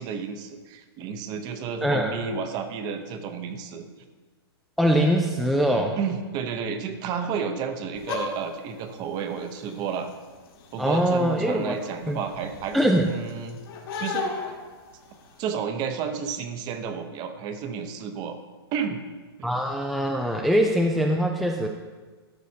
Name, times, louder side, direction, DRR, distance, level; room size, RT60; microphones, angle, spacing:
voice 1, 0.0-3.9 5.7-10.1 10.7-12.8 13.1-13.6 14.0-14.3 15.4-18.4 18.7-19.0 19.4-19.5, right 6 dB, 30° right, 8 dB, 0.8 m, -31 dB
voice 2, 1.8-2.1 4.8-6.0 10.8-11.8 12.1-12.2 12.7-13.1 19.4-21.7, equal, ahead, 1 dB, 0.4 m, -22 dB
sound 1, 7.9-15.4, left 4 dB, 60° left, 1.8 m, -37 dB
12.5 x 6.2 x 2.8 m, 1.4 s
hypercardioid pair, 135°, 14 cm